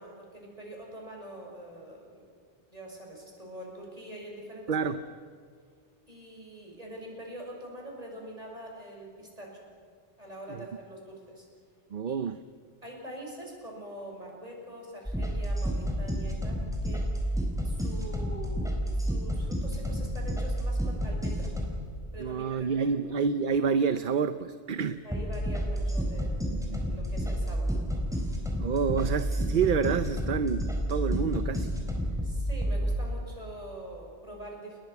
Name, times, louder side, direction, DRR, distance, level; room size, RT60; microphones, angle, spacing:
voice 1, 0.0-2.3 2.7-4.8 6.1-9.7 10.2-11.4 12.0-12.2 12.8-21.5 22.1-22.9 25.0-27.7 32.2-34.8, right 1 dB, 35° right, -1 dB, 6.5 m, -44 dB
voice 2, 4.7-5.0 10.5-10.7 11.9-12.4 22.2-25.0 26.5-26.8 28.6-31.8, right 6 dB, 55° right, 11 dB, 0.8 m, -28 dB
sound 1, 15.0-21.7 25.1-32.9, equal, 5° right, 4.5 m, -30 dB
30.0 x 21.0 x 5.9 m, 2.2 s
omnidirectional pair, 1.1 m